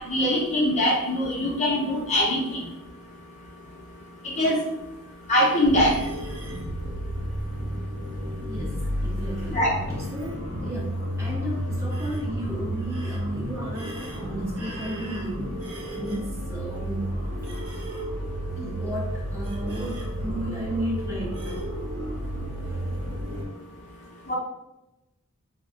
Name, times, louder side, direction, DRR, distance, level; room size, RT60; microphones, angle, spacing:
voice 1, 0.1-2.6 4.4-4.6 5.3-5.9 9.5-9.7 24.3-24.4, left 1 dB, 30° left, -4 dB, 0.7 m, -22 dB
sound 1, 5.6-23.5, equal, 85° right, 0.7 m, -32 dB
voice 2, 8.5-17.2 18.6-21.7 22.6-22.9, equal, 15° right, -5 dB, 0.6 m, -34 dB
4.0 x 2.1 x 2.5 m, 0.97 s
head